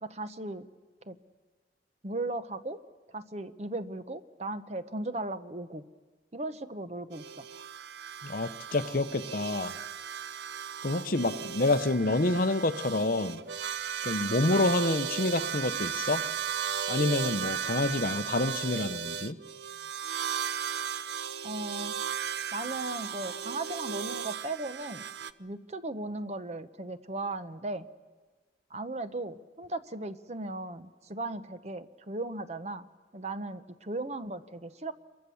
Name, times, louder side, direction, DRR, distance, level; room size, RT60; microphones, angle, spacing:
voice 1, 0.0-0.7 1.0-1.2 2.0-2.8 3.1-5.8 6.3-7.5 21.4-22.0 22.5-25.0 25.4-27.9 28.7-32.9 33.1-34.9, right 2 dB, 35° right, 11 dB, 0.9 m, -37 dB
sound 1, 7.1-25.3, right 8 dB, 70° right, 0.7 m, -36 dB
voice 2, 8.2-9.7 10.8-13.4 14.0-16.2 16.9-19.4, left 2 dB, 50° left, 9 dB, 0.9 m, -28 dB
27.0 x 23.0 x 7.1 m, 1.4 s
head